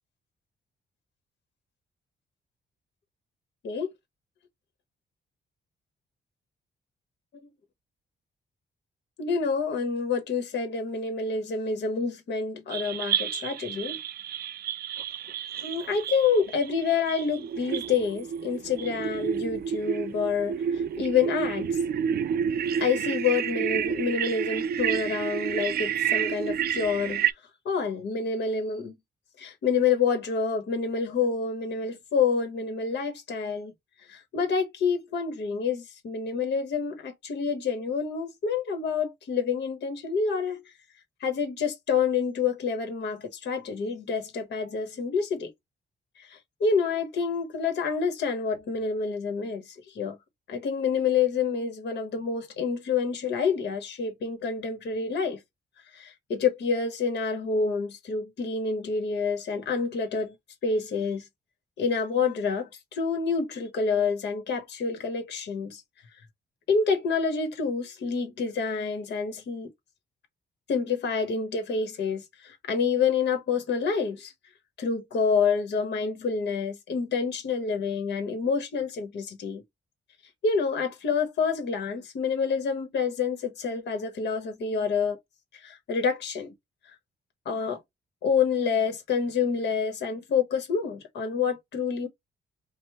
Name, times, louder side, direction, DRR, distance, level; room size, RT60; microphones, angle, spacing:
voice 1, 9.2-14.0 15.6-21.7 22.8-27.2 27.6-28.9 29.4-33.7 34.1-40.6 41.2-45.5 46.2-50.2 50.5-55.4 55.9-60.3 60.6-61.2 61.8-65.8 66.7-69.7 70.7-74.3 74.8-79.6 80.4-85.2 85.5-86.5 87.4-87.8 88.2-92.1, left 5 dB, 65° left, 1.2 m, -28 dB
sound 1, 12.7-27.3, right 8 dB, 55° right, 0.4 m, -30 dB
5.2 x 2.1 x 3.1 m
wide cardioid pair, 160°, 19 cm